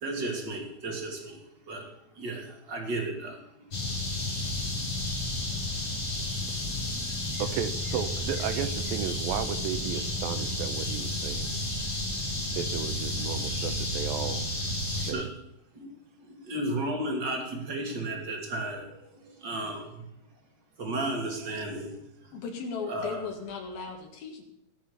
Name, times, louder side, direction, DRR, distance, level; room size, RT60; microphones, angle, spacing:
voice 1, 0.0-1.4 1.7-1.9 2.2-3.7 15.1-15.3 15.7-15.9 16.3-20.0 20.8-21.9 22.9-23.2, right 1 dB, 30° right, 1 dB, 3.0 m, -34 dB
sound 1, 3.7-15.1, left 1 dB, 30° left, 5.7 m, -31 dB
voice 2, 7.4-11.5 12.6-14.5 15.0-15.3 21.6-21.7, right 10 dB, 80° right, 11 dB, 2.6 m, -34 dB
voice 3, 22.3-24.4, left 5 dB, 80° left, 2 dB, 4.0 m, -37 dB
19.5 x 7.4 x 7.1 m, 0.79 s
omnidirectional pair, 4.2 m